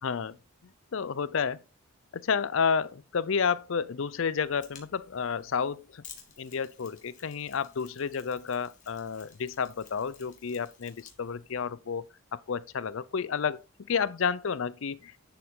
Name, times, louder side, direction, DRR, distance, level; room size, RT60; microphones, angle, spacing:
voice 1, 0.0-0.3 0.9-1.6 2.1-6.0 6.4-12.0 12.3-13.6 13.9-15.2, left 6 dB, 60° left, 0.5 m, -30 dB
Mechanisms, 4.4-11.6, left 7 dB, 35° left, 1.5 m, -54 dB
10.5 x 4.7 x 3.6 m
head